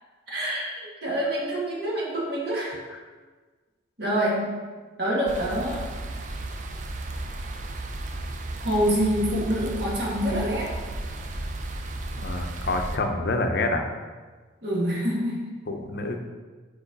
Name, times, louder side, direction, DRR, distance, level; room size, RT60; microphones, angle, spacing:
voice 1, 0.3-2.8 4.0-4.5 5.0-5.8 8.6-10.7 14.6-15.5, equal, 55° right, -5 dB, 1.8 m, -26 dB
sound 1, 5.3-13.0, right 2 dB, 40° right, 0.4 m, -34 dB
voice 2, 12.2-13.8 15.7-16.2, left 2 dB, 55° left, 4 dB, 0.6 m, -27 dB
4.8 x 4.6 x 5.3 m, 1.4 s
head